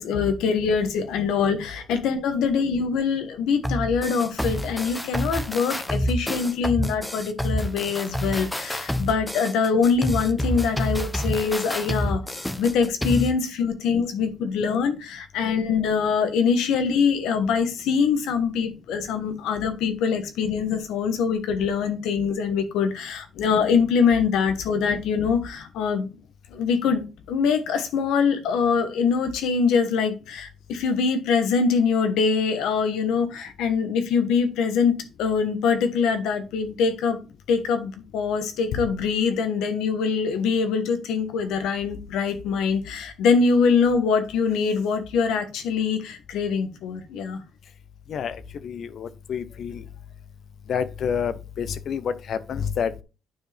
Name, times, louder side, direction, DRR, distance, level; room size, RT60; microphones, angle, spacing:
voice 1, 0.0-26.1 26.5-37.2 37.5-47.4, left 5 dB, 90° left, 1.2 m, -23 dB
sound 1, 3.6-13.3, equal, 10° left, 0.8 m, -28 dB
voice 2, 48.1-49.8 50.7-53.0, left 7 dB, 60° left, 0.8 m, -29 dB
9.1 x 4.7 x 3.4 m
cardioid pair, 90°, 0 cm